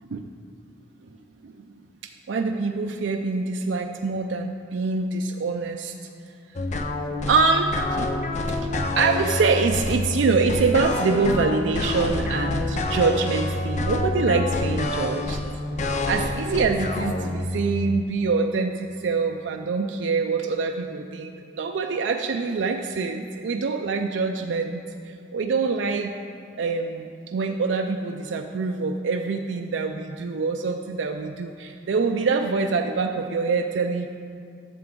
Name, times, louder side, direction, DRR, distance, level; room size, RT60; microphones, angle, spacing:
voice 1, 2.3-5.9 7.3-8.1 8.6-15.4 16.1-26.1 26.6-34.1, right 4 dB, 75° right, 4 dB, 0.4 m, -25 dB
sound 1, 6.6-18.0, left 2 dB, 40° left, 0.5 m, -27 dB
11.0 x 6.9 x 3.7 m, 2.3 s
head